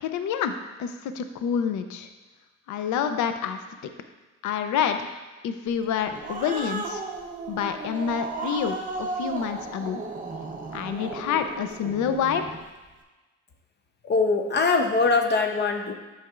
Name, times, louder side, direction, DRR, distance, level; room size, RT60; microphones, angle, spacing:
voice 1, 0.0-0.5 0.8-2.1 2.7-3.6 4.4-5.1 5.4-7.0 7.5-10.0 10.7-12.4, left 8 dB, 65° left, 8 dB, 0.6 m, -27 dB
Growling, 5.8-12.6, right 3 dB, 25° right, 0.8 m, -35 dB
voice 2, 14.0-15.9, left 4 dB, 35° left, 5 dB, 0.7 m, -22 dB
8.4 x 5.7 x 2.4 m, 1.2 s
cardioid pair, 95°, 31 cm